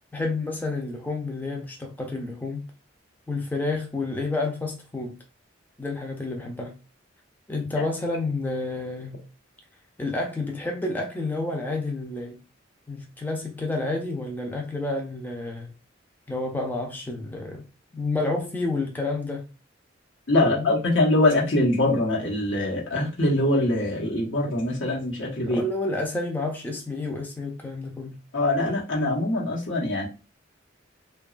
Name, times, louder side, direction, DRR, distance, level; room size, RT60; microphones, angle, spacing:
voice 1, 0.0-2.7 3.3-5.2 5.8-6.7 7.5-9.2 10.0-12.4 12.9-15.7 16.3-17.6 17.9-19.5 20.4-20.7 25.5-28.2, left 2 dB, 10° left, 0.4 m, -30 dB
voice 2, 20.3-25.6 28.3-30.1, left 1 dB, 75° left, 1.0 m, -23 dB
2.8 x 2.2 x 2.4 m
head